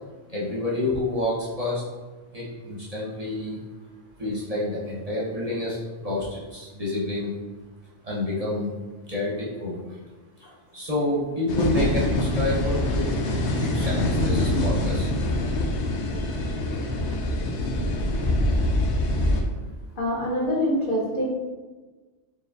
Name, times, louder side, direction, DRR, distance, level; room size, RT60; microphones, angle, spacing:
voice 1, 0.3-1.8 2.3-3.6 4.2-7.4 8.0-8.7 9.1-10.0 10.7-13.2 13.6-15.1, left 1 dB, 35° right, -6 dB, 0.8 m, -28 dB
sound 1, 11.5-19.4, left 1 dB, 75° left, 0.9 m, -24 dB
voice 2, 20.0-21.3, equal, 50° left, -4 dB, 1.0 m, -25 dB
4.4 x 3.2 x 2.6 m, 1.3 s
omnidirectional pair, 1.2 m